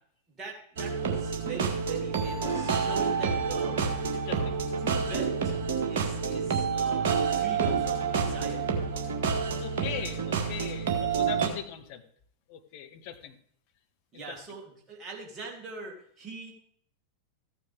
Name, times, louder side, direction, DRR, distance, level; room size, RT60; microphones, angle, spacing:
voice 1, 0.4-3.9 4.3-5.5 5.8-9.1 14.1-16.5, right 4 dB, 25° right, -1 dB, 3.2 m, -42 dB
sound 1, 0.8-11.5, right 5 dB, 55° right, 1.9 m, -28 dB
voice 2, 4.1-4.5 9.6-12.0 12.5-13.3 14.3-14.4, left 9 dB, 45° left, 6 dB, 1.3 m, -40 dB
14.5 x 9.1 x 3.5 m, 0.62 s
figure-of-eight pair, 90°, 0 cm